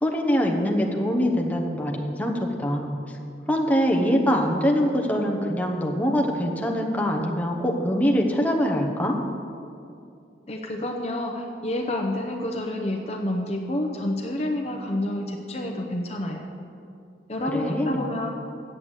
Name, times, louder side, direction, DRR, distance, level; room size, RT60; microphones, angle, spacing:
voice 1, 0.0-3.0 3.5-9.2 17.5-18.0, equal, 10° left, 0 dB, 0.9 m, -23 dB
voice 2, 10.5-16.4 17.3-18.3, left 1 dB, 35° left, 2 dB, 0.7 m, -29 dB
7.9 x 7.6 x 8.0 m, 2.5 s
head